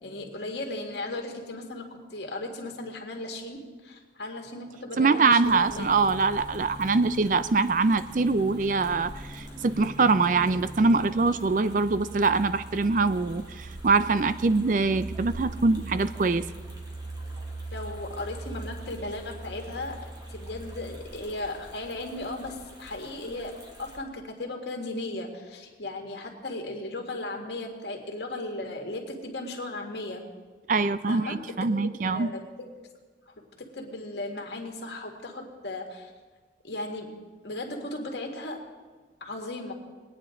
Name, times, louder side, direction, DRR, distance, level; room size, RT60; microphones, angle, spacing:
voice 1, 0.0-5.9 17.7-20.0 20.3-30.2 31.1-31.4 32.1-32.4 33.7-36.1 36.6-37.2 37.4-38.6 39.2-39.7, left 2 dB, 75° left, 2 dB, 2.0 m, -36 dB
voice 2, 5.0-16.4 30.7-32.3, right 4 dB, 45° right, 13 dB, 0.4 m, -23 dB
sound 1, 5.4-24.0, right 2 dB, 25° right, 1.7 m, -42 dB
22.0 x 9.5 x 3.8 m, 1.4 s
head